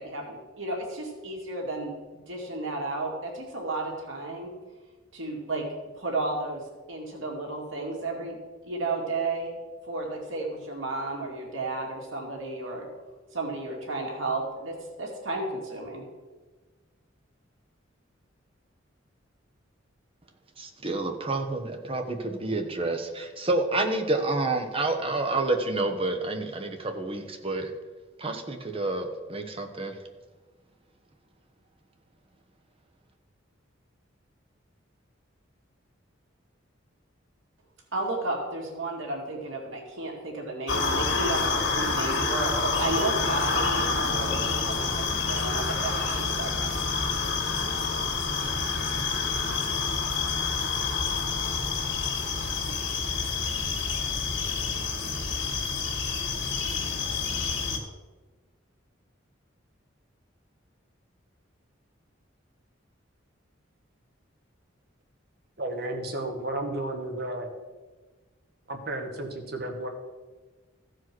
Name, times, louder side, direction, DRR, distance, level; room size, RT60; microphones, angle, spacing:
voice 1, 0.0-1.9 2.3-4.5 5.1-5.6 5.9-6.6 6.9-8.4 8.6-9.6 9.9-12.9 13.3-16.0 37.9-46.7, right 2 dB, 85° right, -1 dB, 2.3 m, -33 dB
voice 2, 20.6-27.7 28.2-29.9, right 2 dB, 30° right, 5 dB, 1.0 m, -29 dB
sound 1, 40.7-57.8, left 4 dB, 70° left, 2.0 m, -28 dB
voice 3, 65.6-67.5 68.7-69.9, right 1 dB, 55° right, 4 dB, 1.4 m, -33 dB
15.0 x 5.0 x 6.1 m, 1.3 s
head